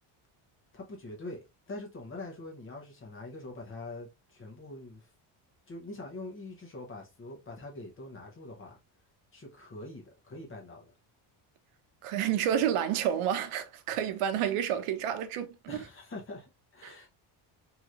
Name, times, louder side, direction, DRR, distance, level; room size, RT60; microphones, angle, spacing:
voice 1, 0.7-1.4 1.7-5.1 5.7-8.8 9.3-10.9 15.7-16.4 16.7-17.1, left 2 dB, 25° left, 0.8 m, -44 dB
voice 2, 12.0-15.8 16.8-16.9, right 9 dB, 90° right, 0.7 m, -30 dB
3.1 x 2.9 x 2.3 m
cardioid pair, 170°, 49 cm